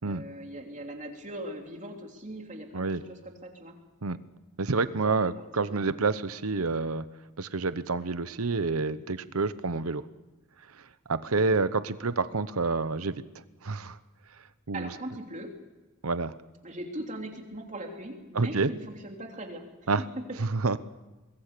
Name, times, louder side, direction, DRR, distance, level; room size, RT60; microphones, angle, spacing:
voice 1, 0.0-3.8 5.6-5.8 14.7-15.5 16.6-19.6, right 1 dB, 35° right, 2 dB, 3.1 m, -40 dB
voice 2, 4.6-7.0 7.4-10.0 11.1-13.2 13.6-14.0 14.7-14.9 16.0-16.3 18.3-18.7 19.9-20.0 20.4-20.8, right 4 dB, 85° right, 14 dB, 0.9 m, -28 dB
25.0 x 20.5 x 6.8 m, 1.2 s
head